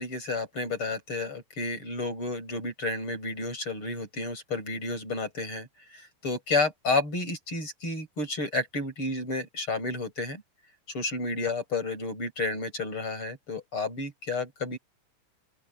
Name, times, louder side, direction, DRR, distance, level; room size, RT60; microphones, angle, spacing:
voice 1, 0.0-5.7 5.9-10.4 10.9-14.8, left 3 dB, 25° left, 8.4 m, -31 dB
open air
omnidirectional pair, 5.5 m